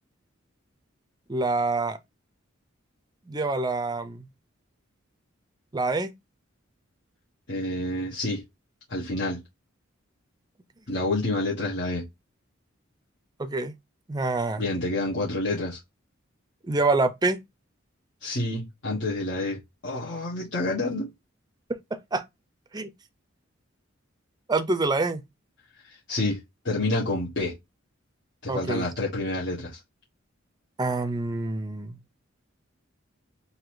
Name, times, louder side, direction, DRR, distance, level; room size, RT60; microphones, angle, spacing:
voice 1, 1.3-2.0 3.3-4.2 5.7-6.1 13.4-13.7 14.1-14.6 16.7-17.4 21.9-22.2 22.7-22.9 24.5-25.2 28.5-28.9 30.8-32.0, right 3 dB, 20° right, 0.5 m, -26 dB
voice 2, 7.5-8.4 8.9-9.4 10.9-12.0 14.6-15.8 18.2-21.1 25.9-26.4 26.6-27.6 28.4-29.8, left 2 dB, 60° left, 1.3 m, -28 dB
3.9 x 2.7 x 4.6 m
head